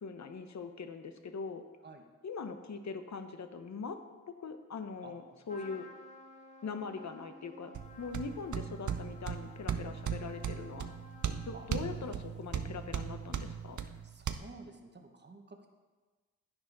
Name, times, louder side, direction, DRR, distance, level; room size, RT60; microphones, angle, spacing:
voice 1, 0.0-1.6 2.2-4.0 4.4-5.2 5.5-5.9 6.6-10.9 11.5-13.8, left 5 dB, 50° left, 8 dB, 0.9 m, -41 dB
voice 2, 5.0-5.6 11.5-11.7 14.0-15.7, right 3 dB, 30° right, 4 dB, 1.2 m, -52 dB
Trumpet, 5.5-12.4, left 2 dB, 20° left, 1.6 m, -55 dB
sound 1, 7.7-14.3, right 8 dB, 60° right, 0.7 m, -38 dB
11.0 x 8.9 x 4.0 m, 1.3 s
cardioid pair, 75°, 34 cm